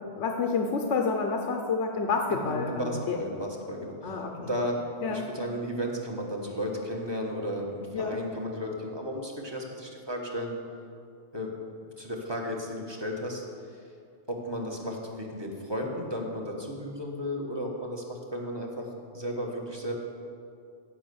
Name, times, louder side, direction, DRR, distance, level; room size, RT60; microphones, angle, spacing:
voice 1, 0.2-3.2 4.0-4.5 5.0-5.2 7.9-8.2, left 4 dB, 80° left, 3 dB, 1.2 m, -29 dB
voice 2, 2.3-4.8 5.1-10.5 11.3-11.5 12.0-13.4 13.7-13.8 14.3-18.9 19.1-19.9, equal, 20° right, -1 dB, 1.6 m, -34 dB
16.0 x 5.7 x 7.0 m, 2.4 s
omnidirectional pair, 1.2 m